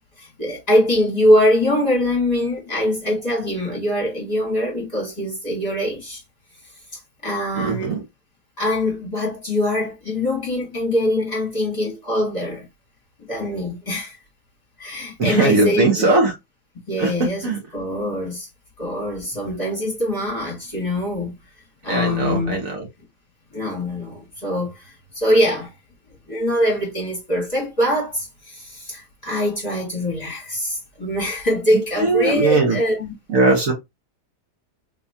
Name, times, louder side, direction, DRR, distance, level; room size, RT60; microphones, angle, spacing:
voice 1, 0.2-6.2 6.9-8.0 8.6-12.7 13.2-14.2 14.8-16.1 16.9-18.5 18.8-21.3 21.8-22.6 23.5-25.7 26.3-33.1, left 1 dB, 25° left, 1.6 m, -23 dB
voice 2, 7.5-8.0 15.2-16.3 17.0-17.6 21.9-22.9 32.0-32.8 33.3-33.7, right 3 dB, 55° right, 1.4 m, -19 dB
3.6 x 3.0 x 2.6 m
omnidirectional pair, 1.8 m